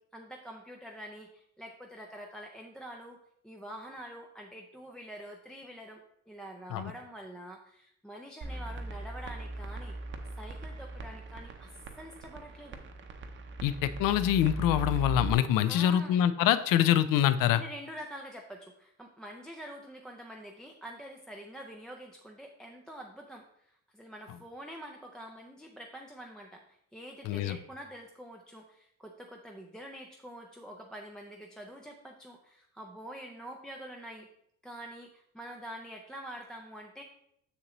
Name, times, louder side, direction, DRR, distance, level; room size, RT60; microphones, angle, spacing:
voice 1, 0.0-3.2 3.4-10.0 10.4-11.7 12.0-12.8 15.7-16.1 17.5-34.3 34.6-37.0, equal, ahead, 0 dB, 0.3 m, -46 dB
sound 1, 8.4-15.3, right 2 dB, 35° right, 0.6 m, -39 dB
voice 2, 13.6-17.6 27.3-27.6, left 11 dB, 80° left, 14 dB, 0.6 m, -25 dB
6.9 x 6.6 x 3.0 m, 0.73 s
cardioid pair, 170°, 33 cm